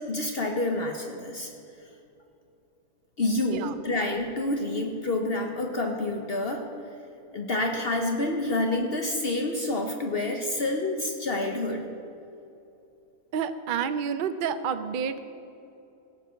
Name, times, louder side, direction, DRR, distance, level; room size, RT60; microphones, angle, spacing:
voice 1, 0.1-1.5 3.2-6.7 7.3-11.9, left 2 dB, 50° left, 3 dB, 1.0 m, -28 dB
voice 2, 13.3-15.3, right 7 dB, 60° right, 10 dB, 0.5 m, -29 dB
17.0 x 6.0 x 6.3 m, 2.7 s
omnidirectional pair, 1.5 m